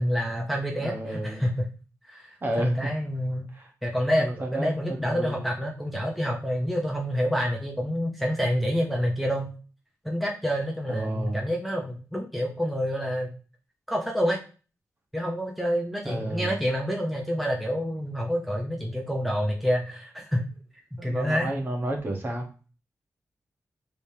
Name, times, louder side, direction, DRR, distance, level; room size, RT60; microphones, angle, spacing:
voice 1, 0.0-1.7 2.1-2.3 2.6-3.5 3.8-9.5 10.0-13.3 13.9-14.4 15.1-20.5 20.9-21.5, equal, ahead, -1 dB, 0.7 m, -28 dB
voice 2, 0.7-1.4 2.4-2.9 3.5-3.7 4.2-5.4 10.9-11.4 16.0-16.5 21.0-22.5, right 1 dB, 35° right, 1 dB, 1.1 m, -31 dB
5.1 x 3.3 x 2.8 m, 0.35 s
wide cardioid pair, 115°, 6 cm